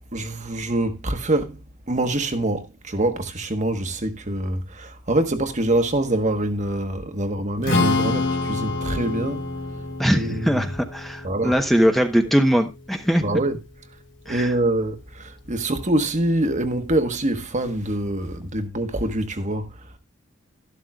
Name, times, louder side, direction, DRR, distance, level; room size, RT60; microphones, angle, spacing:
voice 1, 0.1-9.5 10.1-10.6 11.2-11.6 13.2-13.6 14.2-20.0, right 1 dB, 35° right, 1.3 m, -25 dB
Strum, 7.6-13.9, left 3 dB, 60° left, 3.5 m, -28 dB
voice 2, 10.0-13.2 14.3-14.5, equal, ahead, 1.0 m, -21 dB
13.0 x 12.0 x 2.4 m
head